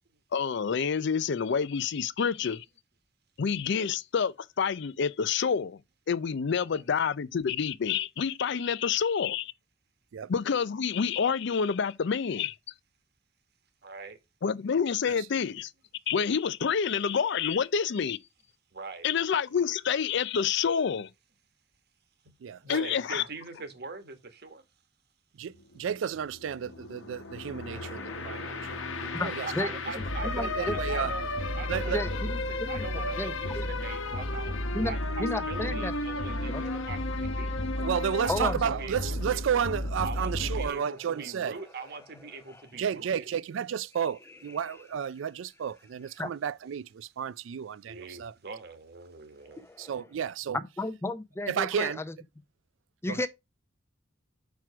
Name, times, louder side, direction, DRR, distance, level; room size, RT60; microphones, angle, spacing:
voice 1, 0.3-2.6 3.4-5.8 6.1-9.5 10.3-12.6 14.4-15.7 16.1-18.2 19.0-21.1 22.7-23.2, left 6 dB, 65° left, 0.5 m, -28 dB
voice 2, 13.8-14.2 18.7-19.1 22.6-24.6 29.1-37.6 38.2-39.2 40.0-43.3 47.9-49.7, right 4 dB, 55° right, 1.3 m, -42 dB
voice 3, 22.4-22.9 25.4-29.5 30.6-31.1 31.7-32.0 37.8-41.6 42.8-48.3 49.8-50.6 51.5-52.0 53.1-53.2, right 8 dB, 75° right, 0.4 m, -32 dB
sound 1, 25.5-40.7, left 2 dB, 90° left, 1.1 m, -33 dB
voice 4, 27.7-29.7 30.2-30.8 31.9-32.8 33.2-33.7 34.1-34.2 34.7-35.9 36.5-36.6 38.3-38.6 42.5-42.6 46.2-46.3 49.4-50.1 50.5-52.1 53.0-53.3, left 2 dB, 15° left, 0.6 m, -34 dB
6.0 x 4.7 x 4.7 m
head